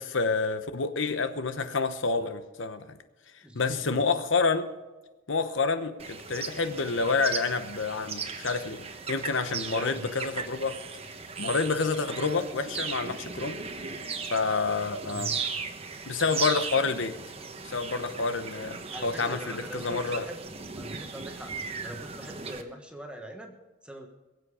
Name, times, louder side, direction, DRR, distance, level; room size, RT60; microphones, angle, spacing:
voice 1, 0.0-3.0 3.5-4.7 5.3-10.8 11.4-13.6 14.3-15.3 16.0-17.1 17.6-20.3, left 4 dB, 70° left, 10 dB, 1.0 m, -28 dB
voice 2, 3.4-4.0 9.5-10.1 15.1-15.4 18.9-20.4 20.7-21.5 21.8-24.1, equal, 5° right, 3 dB, 1.3 m, -42 dB
sound 1, 6.0-22.6, right 5 dB, 30° right, 1.1 m, -37 dB
22.0 x 7.9 x 5.0 m, 1.2 s
head